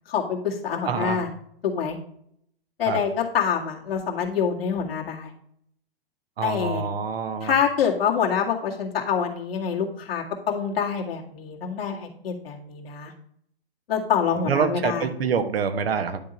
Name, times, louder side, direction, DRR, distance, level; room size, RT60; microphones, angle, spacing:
voice 1, 0.1-1.3 1.6-2.0 2.8-5.3 6.4-6.9 7.4-13.1 13.9-15.1, left 7 dB, 70° left, -1 dB, 2.1 m, -26 dB
voice 2, 0.8-1.2 2.9-3.0 6.4-7.5 14.4-16.2, right 6 dB, 75° right, 9 dB, 1.1 m, -26 dB
10.5 x 3.9 x 5.5 m, 0.70 s
hypercardioid pair, 115°, 30 cm